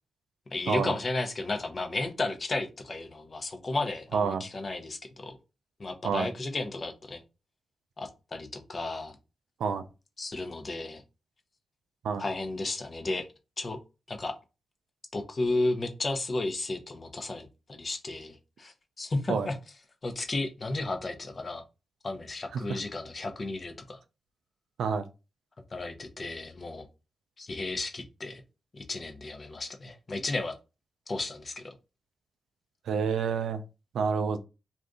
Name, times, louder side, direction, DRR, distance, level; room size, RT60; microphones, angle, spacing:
voice 1, 0.5-5.4 5.8-7.2 8.0-9.2 10.2-11.0 12.2-13.3 13.6-13.8 14.1-14.3 15.1-19.6 20.0-21.6 22.0-24.0 25.7-26.9 27.4-28.4 28.7-30.5 31.1-31.7, left 2 dB, 50° left, 6 dB, 0.7 m, -33 dB
voice 2, 4.1-4.4 6.0-6.3 9.6-9.8 12.0-12.2 19.3-19.5 22.5-22.8 24.8-25.0 32.9-33.6 33.9-34.4, right 6 dB, 80° right, 9 dB, 0.4 m, -28 dB
2.6 x 2.5 x 3.5 m, 0.29 s
supercardioid pair, 40°, 0 cm